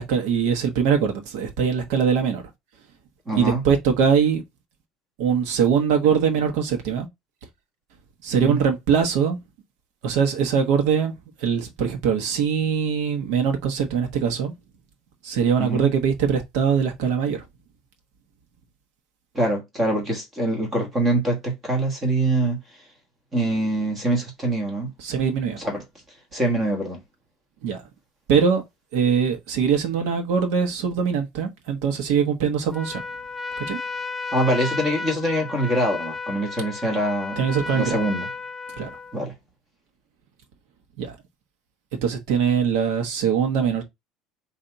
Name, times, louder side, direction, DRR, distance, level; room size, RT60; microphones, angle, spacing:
voice 1, 0.0-2.4 3.3-4.4 5.2-7.1 8.2-9.4 10.0-11.1 11.4-14.5 15.2-17.5 25.0-25.6 27.6-27.8 28.3-28.6 28.9-33.0 33.7-33.8 37.4-38.0 38.8-39.0 41.0-41.2 42.0-43.8, right 7 dB, 75° right, 1.2 m, -22 dB
voice 2, 3.3-3.6 8.4-8.6 15.6-15.9 19.3-22.6 23.3-24.9 25.6-25.8 26.3-27.0 34.3-37.5 37.7-38.3 39.1-39.3, right 1 dB, 15° right, 1.4 m, -24 dB
Trumpet, 32.7-39.2, left 4 dB, 10° left, 0.4 m, -33 dB
4.0 x 2.7 x 4.5 m
cardioid pair, 160°, 0 cm